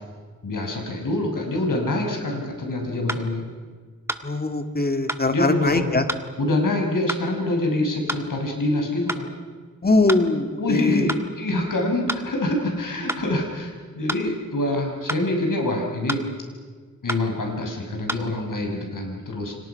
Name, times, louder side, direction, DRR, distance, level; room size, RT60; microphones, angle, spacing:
voice 1, 0.4-3.5 5.3-6.0 6.4-9.3 10.6-16.2 17.0-19.5, left 1 dB, 80° left, 2 dB, 6.0 m, -25 dB
sound 1, 3.1-3.3 4.1-4.3 5.1-5.3 6.1-6.3 7.1-7.3 8.1-8.3 9.1-9.3 10.1-10.3 11.1-11.3 12.1-12.3 13.1-13.2 14.1-14.3 15.1-15.3 16.1-16.3 17.1-17.2 18.1-18.2, right 1 dB, 10° right, 1.7 m, -28 dB
voice 2, 4.2-6.0 9.8-11.0, left 2 dB, 30° left, 7 dB, 2.3 m, -21 dB
29.5 x 25.5 x 5.9 m, 1.5 s
wide cardioid pair, 100°, 32 cm